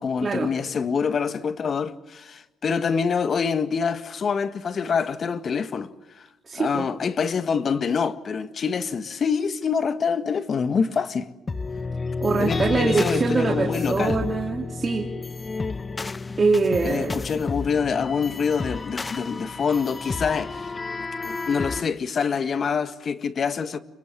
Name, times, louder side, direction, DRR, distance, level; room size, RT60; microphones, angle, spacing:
voice 1, 0.0-5.9 6.2-6.3 6.5-11.3 12.4-14.2 16.8-20.7 21.2-23.8, left 6 dB, 50° left, 1.8 m, -26 dB
voice 2, 6.5-6.8 12.2-15.1 16.4-17.2, right 4 dB, 35° right, 3.3 m, -23 dB
sound 1, 11.5-21.8, left 4 dB, 30° left, 0.9 m, -31 dB
27.5 x 24.0 x 7.0 m
cardioid pair, 90°, 0 cm